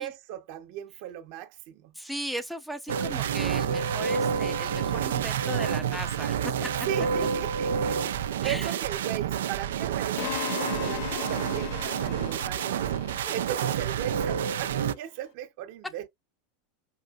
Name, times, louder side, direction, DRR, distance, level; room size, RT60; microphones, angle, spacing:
voice 1, 0.0-1.9 6.9-12.9 13.3-16.1, right 11 dB, 60° right, 0.9 m, -37 dB
voice 2, 1.9-6.7 8.4-8.8 13.2-13.3, equal, ahead, 0.6 m, -37 dB
sound 1, 2.9-14.9, right 8 dB, 75° right, 0.3 m, -29 dB
sound 2, 10.2-14.2, left 11 dB, 65° left, 0.6 m, -37 dB
5.3 x 2.6 x 2.3 m
hypercardioid pair, 90°, 0 cm